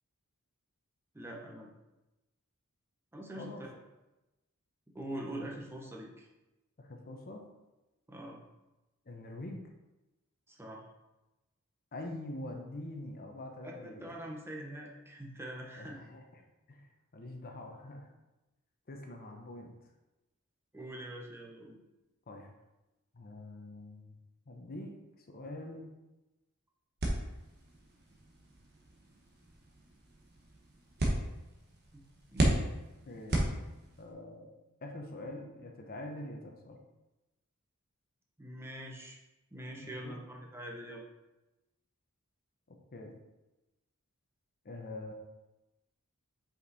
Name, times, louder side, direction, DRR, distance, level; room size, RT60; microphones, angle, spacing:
voice 1, 1.1-1.7 3.1-3.8 4.9-6.3 8.1-8.4 10.5-10.8 13.6-16.0 20.7-21.8 31.9-32.0 32.3-32.6 38.4-39.2 39.5-41.0, right 1 dB, 10° right, -1 dB, 0.8 m, -44 dB
voice 2, 6.8-7.4 9.1-9.6 11.9-14.1 15.8-16.2 16.7-16.8 17.1-18.1 18.9-19.7 22.3-22.5 23.1-24.2 24.5-24.9 25.3-25.9 33.1-33.6 34.0-36.8 39.8-40.2 42.9-43.1 44.6-45.1, left 1 dB, 45° left, 2 dB, 0.8 m, -44 dB
sound 1, 27.0-34.1, right 1 dB, 50° right, 1.1 m, -35 dB
5.3 x 5.2 x 4.1 m, 1.0 s
head